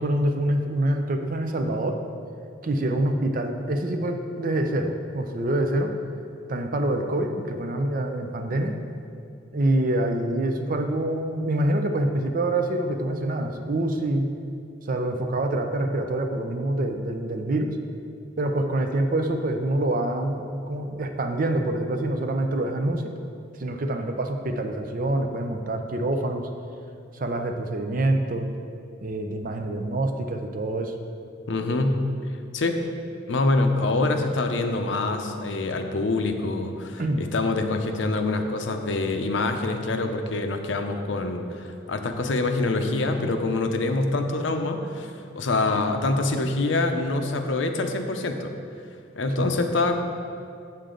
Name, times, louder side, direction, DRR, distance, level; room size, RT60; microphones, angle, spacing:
voice 1, 0.0-2.0 2.6-6.0 6.5-8.8 9.5-14.3 14.8-17.8 18.4-23.1 23.6-26.5 27.1-28.5 29.0-30.9 37.0-37.3 49.4-49.5, right 1 dB, 45° right, 5 dB, 0.5 m, -26 dB
voice 2, 31.5-32.0 32.5-32.8 33.3-48.5 49.2-50.0, left 2 dB, 70° left, 6 dB, 0.6 m, -25 dB
7.6 x 6.7 x 3.8 m, 2.4 s
head